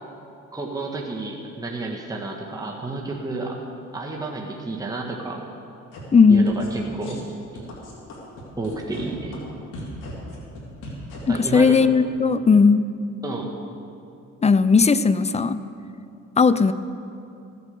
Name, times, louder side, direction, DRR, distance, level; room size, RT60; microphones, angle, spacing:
voice 1, 0.5-3.6 3.9-5.4 6.3-7.2 8.6-9.4 11.3-11.9 13.2-13.5, right 3 dB, 10° right, -1 dB, 1.5 m, -31 dB
sound 1, 5.9-6.0 6.3-6.8 7.0-7.2 7.5-9.0 9.3-9.4 9.7-11.2, left 2 dB, 85° left, 3.1 m, -37 dB
voice 2, 6.1-6.5 11.3-12.9 14.4-15.6 16.4-16.7, left 5 dB, 20° left, 14 dB, 0.5 m, -16 dB
14.5 x 8.3 x 6.9 m, 2.6 s
cardioid pair, 90°, 30 cm